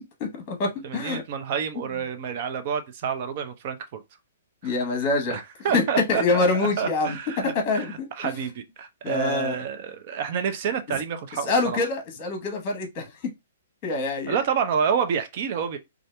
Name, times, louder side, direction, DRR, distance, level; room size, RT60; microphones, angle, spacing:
voice 1, 0.2-1.2 4.6-5.4 5.7-5.8 6.1-8.3 9.0-9.6 11.4-13.1 13.8-14.4, left 3 dB, 35° left, 1.0 m, -25 dB
voice 2, 0.8-4.0 4.6-4.7 5.3-11.8 14.3-15.8, right 7 dB, 45° right, 0.6 m, -29 dB
2.7 x 2.5 x 3.3 m
hypercardioid pair, 135°, 0 cm